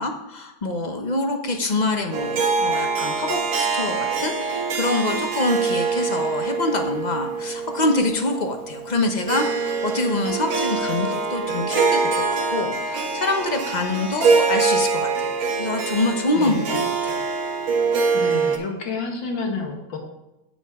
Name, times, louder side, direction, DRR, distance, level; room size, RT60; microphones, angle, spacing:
voice 1, 0.0-17.2, left 2 dB, 35° left, 4 dB, 0.7 m, -25 dB
Harp, 2.1-18.6, right 4 dB, 80° right, 2.2 m, -24 dB
voice 2, 16.3-16.7 18.1-20.0, left 4 dB, 65° left, 1 dB, 2.6 m, -29 dB
9.0 x 7.8 x 4.7 m, 0.95 s
omnidirectional pair, 2.2 m